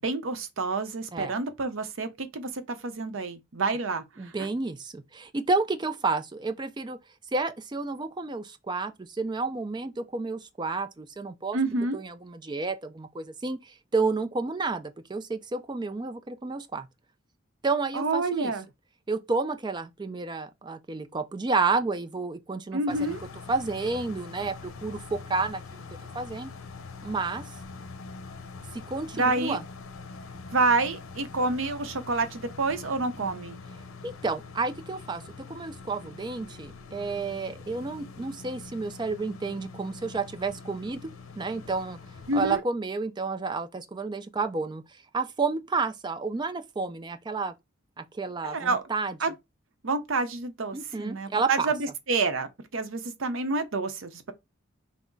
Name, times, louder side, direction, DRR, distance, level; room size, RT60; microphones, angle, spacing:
voice 1, 0.0-4.3 11.5-12.0 17.9-18.6 22.7-23.2 29.1-29.6 30.5-33.6 42.3-42.6 48.4-48.8 49.2-49.3 49.8-54.3, right 3 dB, 65° right, 0.7 m, -28 dB
voice 2, 4.2-7.0 7.3-11.6 11.9-16.9 17.6-18.5 19.1-23.2 23.5-25.8 26.1-26.5 27.0-27.5 28.7-29.6 34.0-35.2 35.5-41.0 41.4-42.0 42.3-47.5 48.0-49.2 50.7-51.7, right 3 dB, 20° right, 0.4 m, -30 dB
sound 1, 22.9-42.6, left 4 dB, 75° left, 0.7 m, -44 dB
6.0 x 2.1 x 3.9 m
head